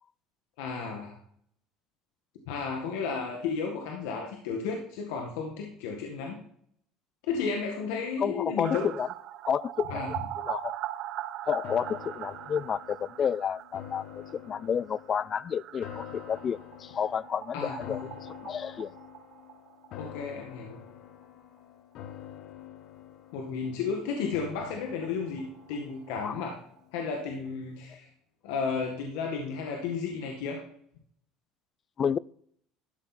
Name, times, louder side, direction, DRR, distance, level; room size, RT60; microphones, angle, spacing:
voice 1, 0.6-1.2 2.5-6.4 7.3-8.9 9.9-10.1 17.5-18.0 20.0-20.8 23.3-26.6 26.9-28.1 28.4-30.6, left 5 dB, 85° left, 1 dB, 1.8 m, -33 dB
voice 2, 8.2-9.1 9.5-10.7 11.5-14.0 14.3-18.0 18.4-18.9 26.2-26.3 32.0-32.2, left 7 dB, 35° left, 22 dB, 0.3 m, -30 dB
sound 1, 8.6-20.2 20.5-20.6 20.9-21.0 24.0-24.1 24.3-24.4 24.7-26.4 26.8-26.9, right 13 dB, 55° right, 0.4 m, -41 dB
sound 2, 11.6-26.9 27.3-27.4, left 10 dB, 60° left, 0.8 m, -47 dB
12.5 x 6.4 x 4.3 m, 0.65 s
supercardioid pair, 115°, 0 cm